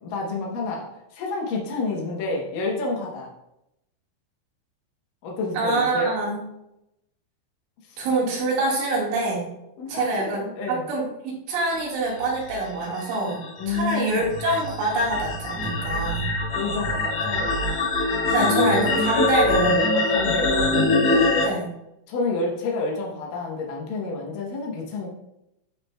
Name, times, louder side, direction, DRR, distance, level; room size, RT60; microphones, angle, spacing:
voice 1, 0.0-0.9 1.1-3.3 5.2-6.2 7.9-8.0 9.8-10.8 13.6-14.3 16.5-17.8 18.4-18.9 19.9-20.7 22.1-25.1, left 3 dB, 85° left, -2 dB, 1.9 m, -29 dB
voice 2, 5.5-6.4 8.0-9.5 9.9-13.4 13.7-16.3 18.3-19.9 21.4-21.7, right 2 dB, 80° right, -4 dB, 4.3 m, -25 dB
sound 1, 12.2-21.4, left 2 dB, 60° left, 1.7 m, -23 dB
12.5 x 4.2 x 2.3 m, 0.85 s
omnidirectional pair, 5.5 m